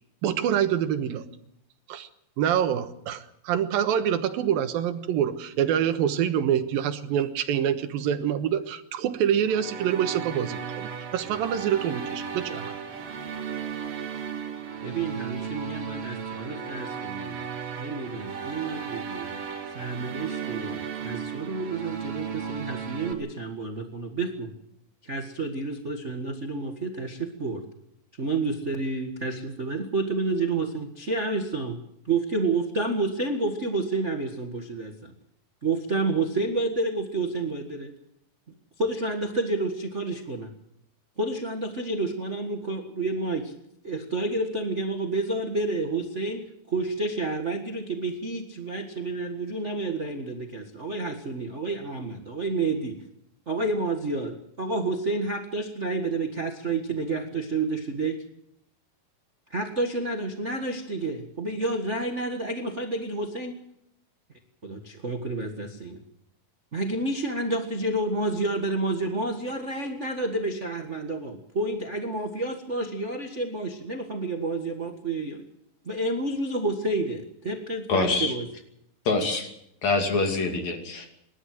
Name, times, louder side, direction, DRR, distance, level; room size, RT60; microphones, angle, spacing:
voice 1, 0.2-1.3 1.9-2.1 2.4-12.7, right 9 dB, 90° right, 9 dB, 3.0 m, -26 dB
sound 1, 9.5-23.1, right 7 dB, 70° right, 4.2 m, -35 dB
voice 2, 14.8-17.4 17.8-19.3 19.7-24.5 25.0-27.6 28.2-31.8 32.1-35.1 35.6-37.9 38.8-40.5 41.2-43.5 43.8-53.0 53.5-58.2 59.5-63.5 64.6-66.0 66.7-75.4 75.8-78.5, right 2 dB, 35° right, 3 dB, 1.2 m, -29 dB
voice 3, 77.9-78.3 79.1-79.5 79.8-81.1, left 3 dB, 55° left, 4 dB, 3.8 m, -25 dB
27.5 x 12.5 x 7.8 m, 0.78 s
omnidirectional pair, 4.0 m